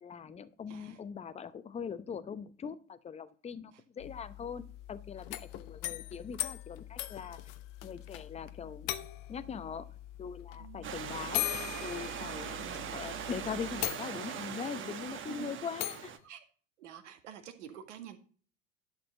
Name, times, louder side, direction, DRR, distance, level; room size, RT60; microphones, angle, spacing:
voice 1, 0.0-7.4 7.8-8.9 9.3-9.9 10.2-16.1, left 6 dB, 15° left, 13 dB, 0.8 m, -41 dB
voice 2, 0.7-1.0 3.7-3.8 10.6-11.2 15.3-15.5 16.2-16.4 16.8-18.2, right 10 dB, 70° right, 6 dB, 1.9 m, -49 dB
sound 1, 4.0-13.9, left 13 dB, 70° left, 1.1 m, -50 dB
sound 2, 5.2-8.2 8.5-8.6 8.9-9.4 10.5-10.6 11.3-12.8 13.3-13.4 13.8-14.5 15.8-16.1, left 15 dB, 50° left, 0.9 m, -37 dB
Stream / Liquid, 10.8-16.2, right 8 dB, 30° right, 1.1 m, -41 dB
11.5 x 6.9 x 4.1 m, 0.41 s
hypercardioid pair, 80°, 38 cm